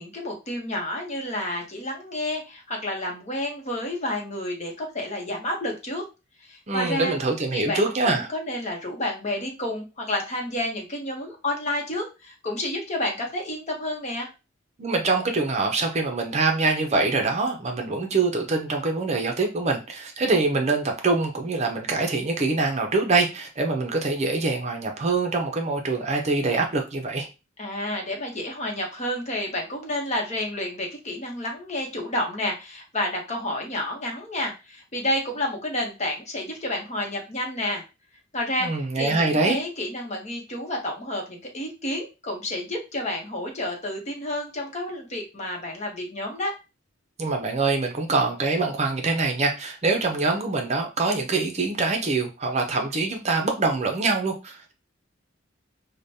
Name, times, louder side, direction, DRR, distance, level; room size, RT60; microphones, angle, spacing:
voice 1, 0.0-6.0 6.4-7.1 7.5-14.3 27.6-37.8 38.3-38.7 38.9-46.5, left 1 dB, 35° left, 1 dB, 0.9 m, -30 dB
voice 2, 6.7-8.3 14.8-27.3 38.6-39.6 47.2-54.7, right 3 dB, 35° right, 3 dB, 0.6 m, -24 dB
5.0 x 2.2 x 2.6 m, 0.28 s
head